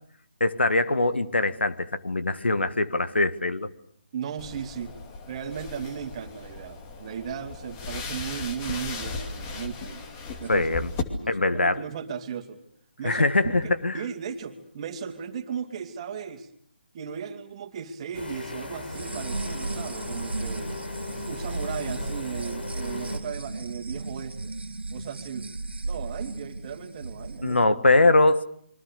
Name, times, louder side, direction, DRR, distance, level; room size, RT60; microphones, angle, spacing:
voice 1, 0.4-3.7 10.5-10.9 11.3-11.8 13.0-14.0 27.4-28.4, left 2 dB, 85° left, 11 dB, 1.8 m, -22 dB
voice 2, 4.1-5.0 5.3-10.0 10.4-10.7 11.1-12.6 13.0-16.5 16.9-20.7 21.2-24.5 24.9-25.4 25.8-27.6, right 7 dB, 35° right, 7 dB, 2.6 m, -36 dB
sound 1, 4.4-11.0, left 4 dB, 25° left, 2.6 m, -37 dB
sound 2, 18.1-23.2, left 3 dB, 65° left, 6.4 m, -38 dB
sound 3, 18.9-27.5, right 2 dB, 90° right, 1.9 m, -35 dB
27.5 x 24.0 x 6.7 m, 0.64 s
figure-of-eight pair, 155°, 6 cm